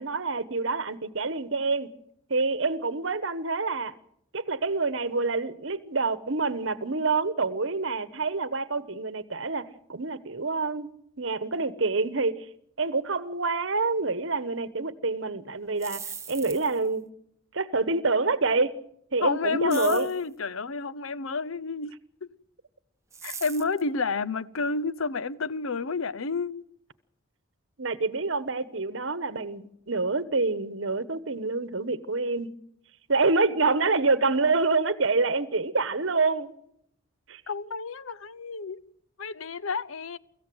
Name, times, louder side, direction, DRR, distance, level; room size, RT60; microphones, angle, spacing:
voice 1, 0.0-1.9 2.3-3.9 4.3-10.9 11.2-12.5 12.8-16.0 16.3-17.1 17.5-18.7 19.1-20.1 27.8-32.5 33.1-36.5 37.3-37.4, right 3 dB, 65° right, 1.2 m, -27 dB
sound 1, 15.6-16.9 19.7-20.2 23.1-23.8, right 6 dB, 15° right, 1.0 m, -40 dB
voice 2, 19.2-22.3 23.2-26.6 37.5-38.8 39.2-40.2, left 4 dB, 75° left, 0.7 m, -30 dB
24.5 x 15.0 x 7.9 m
head